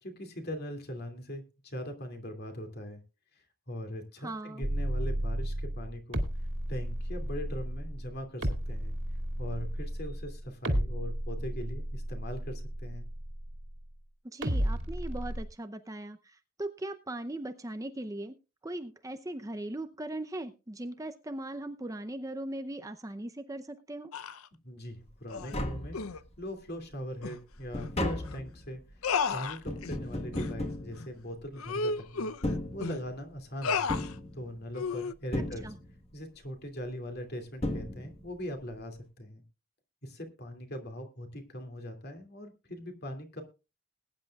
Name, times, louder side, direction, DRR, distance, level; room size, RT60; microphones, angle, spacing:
voice 1, 0.0-3.0 3.3-6.2 6.7-9.0 9.4-13.1 24.6-26.0 26.4-28.8 29.3-32.3 32.7-33.9 34.3-35.7 36.1-39.4 40.0-43.4, equal, 45° left, 5 dB, 2.6 m, -41 dB
voice 2, 4.2-4.7 14.2-18.3 18.6-24.1 35.6-35.7, right 1 dB, 15° right, 8 dB, 0.6 m, -39 dB
sound 1, 4.6-13.9 14.4-15.4, equal, 60° right, 2.3 m, -33 dB
sound 2, 24.1-24.5 25.3-25.6 25.9-26.2 27.2-27.4 27.8-27.9 28.2-28.4 29.0-30.0 30.3-30.5 31.0-31.1 31.6-33.0 33.6-34.1 34.7-35.1, left 5 dB, 80° left, 0.7 m, -33 dB
Tap, 25.1-25.2 25.4-26.5 26.9-31.7 32.3-33.3 33.9-34.9 35.3-36.2 37.2-37.3 37.6-38.4 38.7-38.8, left 1 dB, 30° left, 1.4 m, -36 dB
21.0 x 10.0 x 2.4 m, 0.29 s
head